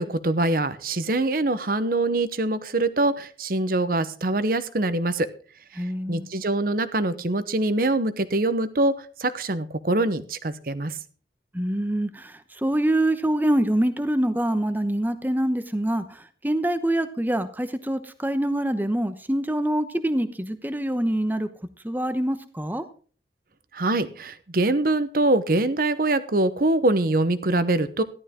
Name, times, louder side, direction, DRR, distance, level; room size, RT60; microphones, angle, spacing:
voice 1, 0.0-5.3 5.7-11.0 23.7-28.0, right 2 dB, 55° right, 14 dB, 0.9 m, -24 dB
voice 2, 5.7-6.3 11.5-21.5 21.8-22.8, right 1 dB, 10° right, 11 dB, 0.9 m, -25 dB
14.0 x 12.0 x 3.7 m, 0.41 s
head